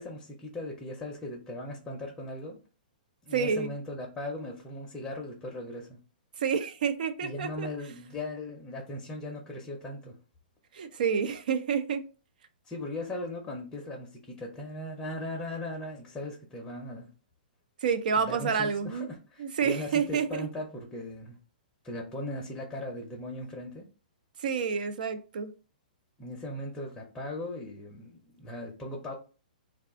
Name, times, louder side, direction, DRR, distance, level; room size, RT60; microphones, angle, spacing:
voice 1, 0.0-2.6 3.3-6.0 7.2-10.2 12.6-17.1 18.2-21.4 21.8-23.8 26.2-29.1, left 1 dB, 10° left, 0.5 m, -38 dB
voice 2, 3.3-3.7 6.4-7.7 10.7-12.0 17.8-19.1 19.4-20.5 24.4-25.5, right 6 dB, 65° right, 0.4 m, -29 dB
2.4 x 2.4 x 3.5 m
hypercardioid pair, 150°, 5 cm